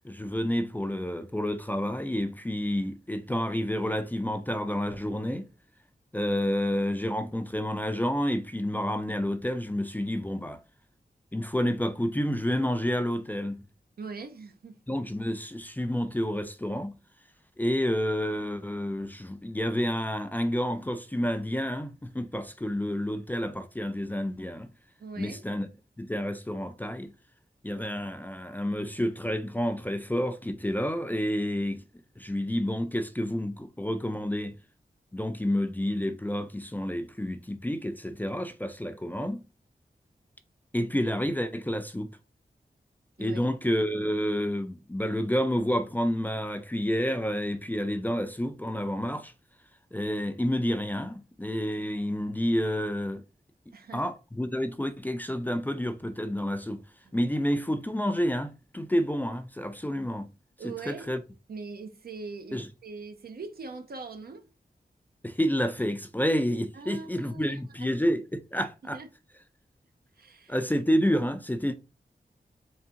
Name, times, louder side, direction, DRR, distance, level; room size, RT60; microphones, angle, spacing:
voice 1, 0.0-5.5 6.1-10.6 11.3-13.6 14.9-17.0 17.6-24.7 25.2-25.7 26.0-27.1 27.6-31.8 32.2-34.6 35.1-39.4 40.7-42.1 43.2-49.3 49.9-53.2 53.9-56.8 57.1-60.3 60.6-61.2 62.5-62.7 65.2-69.0 70.5-71.7, equal, 10° left, 0.4 m, -29 dB
voice 2, 14.0-14.8 25.0-25.4 43.2-43.4 53.7-54.1 57.0-57.1 60.6-61.1 61.5-64.5 66.7-68.0 68.6-68.7 68.9-69.1 70.2-70.6, right 4 dB, 70° right, 0.6 m, -42 dB
3.6 x 3.4 x 2.8 m
wide cardioid pair, 80°, 16 cm